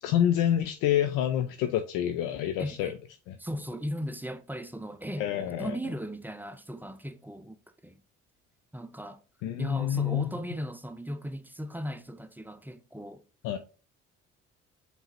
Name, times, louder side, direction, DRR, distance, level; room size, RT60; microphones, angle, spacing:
voice 1, 0.0-2.9 3.3-3.4 5.2-5.8 9.4-10.3 13.4-13.6, left 10 dB, 65° left, 0.5 m, -27 dB
voice 2, 2.6-2.9 3.4-7.6 7.8-8.0 8.7-9.2 9.6-13.2, equal, 5° right, 0.5 m, -37 dB
5.4 x 3.0 x 3.2 m
hypercardioid pair, 50°, 35 cm